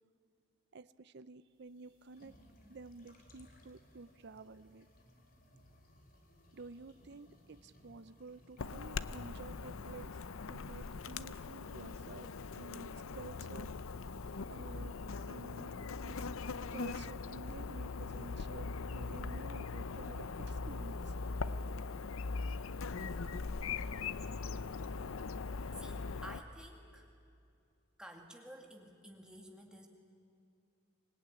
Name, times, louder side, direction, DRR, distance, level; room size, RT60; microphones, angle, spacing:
voice 1, 0.7-2.3 2.7-4.9 6.5-10.2 10.5-12.3 12.6-13.7 14.5-15.0 15.3-15.8 16.0-16.2 16.7-21.1, right 3 dB, 50° right, 13 dB, 0.6 m, -51 dB
sound 1, 1.5-15.9, left 1 dB, 40° left, 3.1 m, -65 dB
Chirp tweet / Buzz, 8.6-26.4, left 4 dB, 75° left, 0.6 m, -41 dB
voice 2, 25.7-27.1 28.0-29.9, right 1 dB, 5° right, 1 dB, 2.2 m, -52 dB
25.0 x 18.5 x 9.8 m, 2.6 s
head